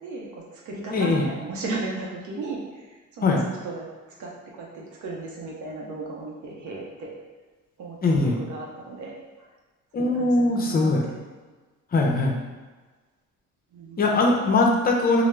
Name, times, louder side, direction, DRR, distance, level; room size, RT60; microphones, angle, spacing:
voice 1, 0.0-3.4 3.6-3.9 4.2-7.1 7.8-9.1 10.0-11.1 13.7-14.0, right 3 dB, 75° right, -2 dB, 0.6 m, -35 dB
voice 2, 0.9-1.3 3.2-3.4 8.0-8.4 9.9-11.0 11.9-12.3 14.0-15.2, left 2 dB, 30° left, 0 dB, 0.5 m, -21 dB
2.2 x 2.0 x 3.1 m, 1.3 s
cardioid pair, 90°, 30 cm